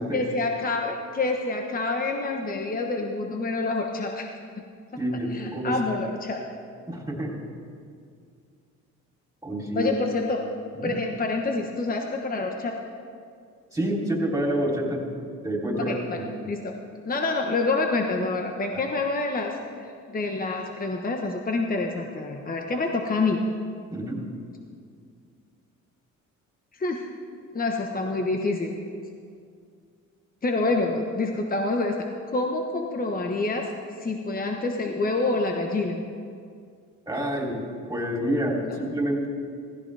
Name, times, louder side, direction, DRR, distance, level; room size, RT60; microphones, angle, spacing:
voice 1, 0.1-4.3 5.3-6.4 9.7-10.4 10.8-12.8 15.8-16.2 16.5-16.7 17.1-23.4 26.7-27.0 27.5-28.8 30.4-32.0 32.3-33.7 34.0-36.0 38.6-38.8, left 3 dB, 30° left, 2 dB, 1.1 m, -27 dB
voice 2, 5.0-5.8 6.9-7.4 9.4-9.9 10.7-11.0 13.7-15.0 15.4-16.5 18.7-18.8 23.9-24.2 37.1-37.6 37.9-39.3, right 1 dB, 10° right, -2 dB, 3.3 m, -28 dB
16.5 x 16.0 x 3.4 m, 2.3 s
cardioid pair, 90°, 30 cm